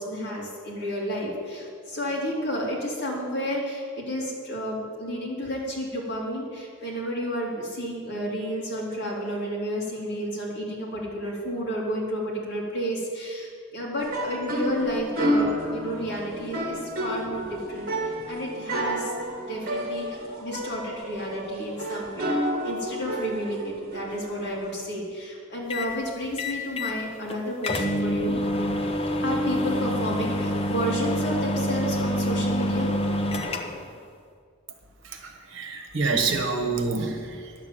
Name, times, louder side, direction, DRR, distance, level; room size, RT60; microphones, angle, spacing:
voice 1, 0.0-19.1 19.5-22.3 22.6-28.4 29.2-32.9, equal, 50° left, -4 dB, 3.0 m, -31 dB
sound 1, 14.0-24.7, equal, 40° right, 1.7 m, -30 dB
sound 2, 25.7-25.9 26.4-27.0 27.3-27.4 27.6-33.9, left 1 dB, 25° left, 0.8 m, -27 dB
voice 2, 35.0-37.5, right 4 dB, 60° right, 4 dB, 1.4 m, -27 dB
10.5 x 7.1 x 9.0 m, 2.1 s
head